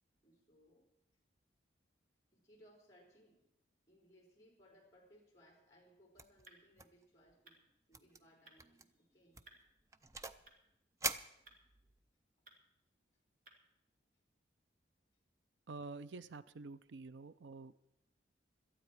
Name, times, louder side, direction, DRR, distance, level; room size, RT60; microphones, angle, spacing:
voice 1, 0.2-0.8 2.3-3.5 3.9-7.6 7.9-9.6, equal, 20° left, 0 dB, 4.3 m, -66 dB
sound 1, 5.7-13.8, right 2 dB, 45° right, 2.2 m, -68 dB
sound 2, 6.2-6.5 6.8-7.0 7.3-7.4 7.9-8.2 8.6-8.8 9.3-10.5 11.0-12.0, right 3 dB, 15° right, 0.5 m, -43 dB
voice 2, 15.7-17.8, right 3 dB, 70° right, 15 dB, 0.5 m, -49 dB
18.0 x 13.0 x 4.6 m, 0.81 s
head